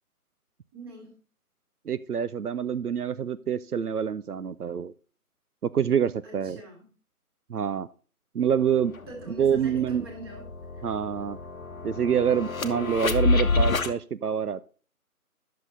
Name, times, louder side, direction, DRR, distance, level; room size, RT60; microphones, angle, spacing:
voice 1, 0.7-1.2 6.2-6.9 9.1-10.8 12.6-12.8, right 2 dB, 15° right, 1 dB, 1.7 m, -43 dB
voice 2, 1.9-4.9 5.6-6.6 7.5-7.9 8.3-8.9 9.3-10.0 10.8-11.4 11.8-14.6, right 8 dB, 80° right, 14 dB, 0.6 m, -26 dB
sound 1, 8.5-8.6 8.9-13.9, left 3 dB, 65° left, 1.0 m, -28 dB
10.5 x 6.5 x 3.9 m, 0.38 s
figure-of-eight pair, 150°, 45 cm